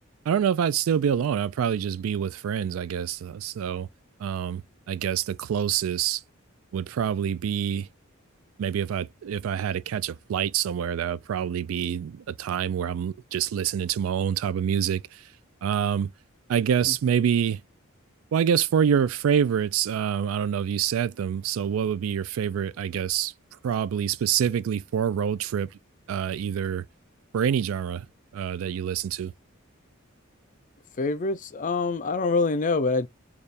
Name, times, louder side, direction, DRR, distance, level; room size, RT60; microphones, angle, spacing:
voice 1, 0.3-3.9 4.2-4.6 4.9-6.2 6.7-7.9 8.6-15.2 15.6-16.1 16.5-17.6 18.3-23.3 23.6-25.7 26.1-26.8 27.3-28.1 28.3-29.3, right 8 dB, 80° right, 0.3 m, -26 dB
voice 2, 31.0-33.1, left 3 dB, 40° left, 0.4 m, -25 dB
3.3 x 2.4 x 4.0 m
head